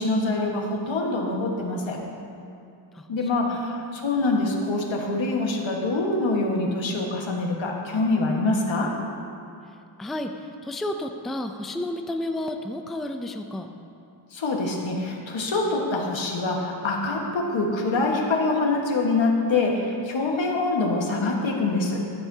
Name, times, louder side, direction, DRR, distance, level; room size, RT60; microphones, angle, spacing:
voice 1, 0.0-2.0 3.1-8.9 14.3-22.1, left 2 dB, 85° left, -1 dB, 1.6 m, -25 dB
voice 2, 2.9-3.6 9.7-13.7, left 1 dB, ahead, 5 dB, 0.4 m, -32 dB
14.5 x 11.5 x 2.8 m, 2.6 s
wide cardioid pair, 155°, 45 cm